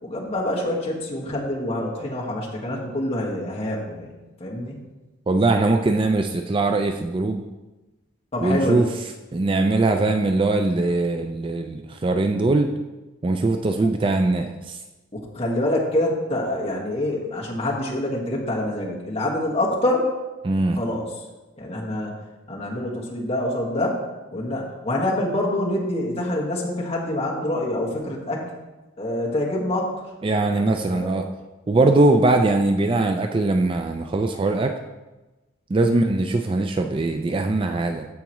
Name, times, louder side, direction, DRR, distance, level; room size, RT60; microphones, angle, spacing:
voice 1, 0.0-4.1 4.4-4.8 8.3-8.9 13.8-13.9 15.1-20.1 20.7-21.2 21.6-22.1 22.5-24.0 24.3-28.4 29.0-29.9 30.5-31.2 35.9-36.1, left 1 dB, 30° left, -3 dB, 1.6 m, -26 dB
voice 2, 5.3-7.4 8.4-8.9 9.3-12.7 13.2-14.8 20.4-20.8 30.2-31.3 31.7-34.8 35.7-38.1, right 2 dB, 25° right, 5 dB, 0.4 m, -21 dB
14.0 x 4.8 x 3.0 m, 1.1 s
head